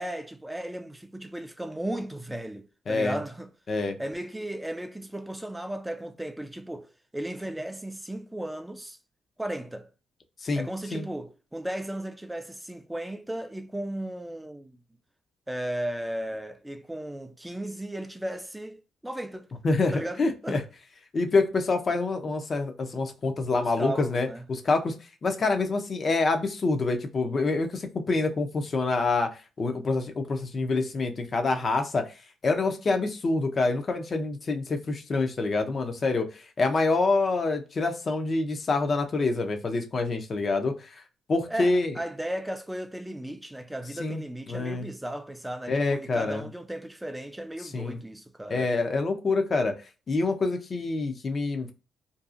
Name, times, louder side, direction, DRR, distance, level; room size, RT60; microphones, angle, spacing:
voice 1, 0.0-3.5 4.0-9.0 9.4-9.9 10.5-14.8 15.5-19.5 19.9-20.6 23.5-24.4 41.5-48.7, right 1 dB, 5° right, 0.4 m, -35 dB
voice 2, 2.9-3.2 3.7-4.0 10.4-10.7 10.9-11.0 19.6-20.6 21.1-24.9 25.2-32.1 32.4-41.0 41.3-42.0 44.0-44.2 44.5-44.9 45.7-46.4 47.7-48.0 48.5-49.8 50.1-51.7, left 3 dB, 40° left, 0.5 m, -26 dB
2.6 x 2.3 x 2.4 m
cardioid pair, 90°, 0 cm